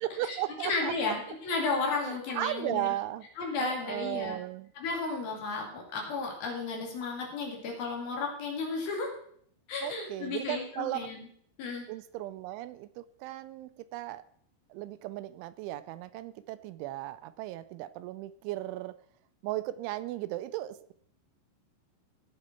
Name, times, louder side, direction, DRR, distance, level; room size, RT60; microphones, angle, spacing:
voice 1, 0.0-1.2 2.0-3.3 3.6-4.7 9.8-11.1 11.9-14.2 14.7-19.0 19.4-20.9, right 15 dB, 85° right, 15 dB, 3.0 m, -36 dB
voice 2, 0.6-2.9 3.4-4.4 4.8-9.1 9.7-11.3 11.6-11.8, left 4 dB, 55° left, 0 dB, 4.1 m, -33 dB
17.0 x 7.6 x 4.5 m, 0.62 s
omnidirectional pair, 5.4 m